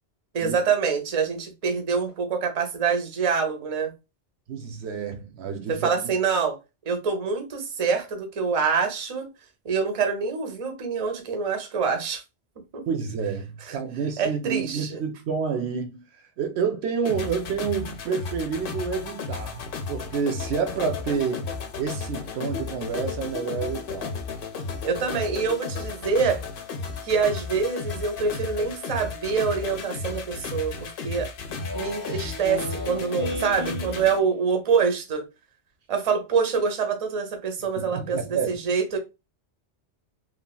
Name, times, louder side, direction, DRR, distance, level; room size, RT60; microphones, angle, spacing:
voice 1, 0.3-3.9 5.7-6.6 6.9-9.3 9.6-12.2 12.7-12.8 13.6-13.8 14.2-15.0 24.8-26.4 27.0-31.3 31.7-35.2 35.9-39.0, right 5 dB, 35° right, 0.7 m, -25 dB
voice 2, 4.5-5.9 12.9-16.0 16.4-19.6 19.9-21.5 21.8-24.2 37.8-38.6, right 6 dB, 70° right, 0.8 m, -29 dB
sound 1, 17.0-34.2, left 5 dB, 60° left, 0.7 m, -34 dB
Speech synthesizer, 31.5-34.5, left 1 dB, 25° left, 0.5 m, -34 dB
3.2 x 2.4 x 2.2 m
omnidirectional pair, 1.2 m